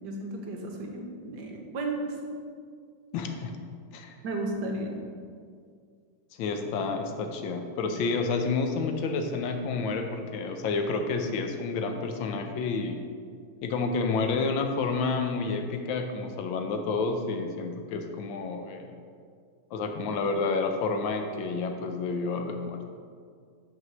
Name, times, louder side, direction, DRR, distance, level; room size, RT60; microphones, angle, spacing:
voice 1, 0.0-2.2 4.2-5.0, right 2 dB, 65° right, 1 dB, 1.3 m, -34 dB
voice 2, 3.1-3.5 3.9-4.2 6.4-13.0 13.6-18.9 19.7-22.8, left 4 dB, 75° left, 5 dB, 1.4 m, -29 dB
6.1 x 4.6 x 6.1 m, 2.1 s
omnidirectional pair, 2.2 m